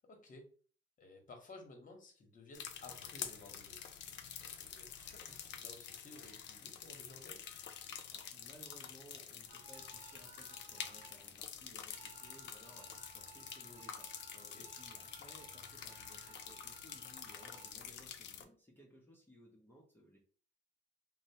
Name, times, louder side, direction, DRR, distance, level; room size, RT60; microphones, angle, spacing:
voice 1, 0.1-0.4 1.0-3.8 4.4-7.4 14.3-14.6, left 2 dB, 40° left, 3 dB, 0.9 m, -56 dB
sound 1, 2.5-18.4, left 8 dB, 65° left, 0.4 m, -48 dB
voice 2, 8.1-20.2, equal, 10° left, -3 dB, 0.6 m, -61 dB
sound 2, 9.5-11.5 11.9-17.7, right 6 dB, 85° right, 0.5 m, -59 dB
2.7 x 2.0 x 2.8 m, 0.42 s
cardioid pair, 90°, 20 cm